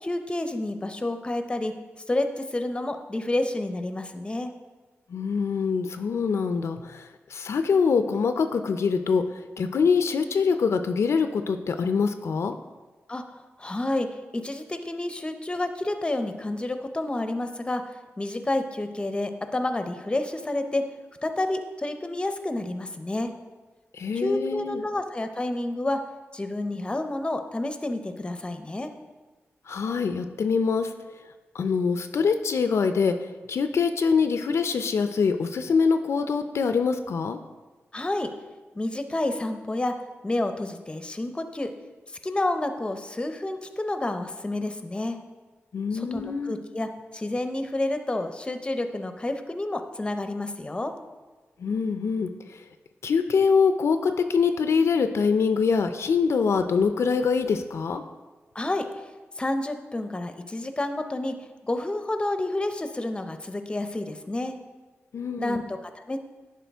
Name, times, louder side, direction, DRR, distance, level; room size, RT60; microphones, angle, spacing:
voice 1, 0.0-1.7 2.1-4.5 13.1-13.2 13.6-14.1 14.3-17.8 18.2-20.8 21.2-23.3 24.1-26.0 26.3-28.9 37.9-38.3 38.8-39.9 40.2-41.7 42.2-45.2 45.9-50.9 58.5-58.8 59.4-61.3 61.6-64.6 65.4-66.2, left 2 dB, 20° left, 8 dB, 0.6 m, -29 dB
voice 2, 5.1-12.5 23.9-24.8 29.7-30.9 31.5-37.4 45.7-46.6 51.6-52.6 53.0-58.0 65.1-65.6, left 5 dB, 70° left, 8 dB, 0.4 m, -24 dB
10.5 x 4.4 x 3.4 m, 1.3 s
wide cardioid pair, 85°, 5 cm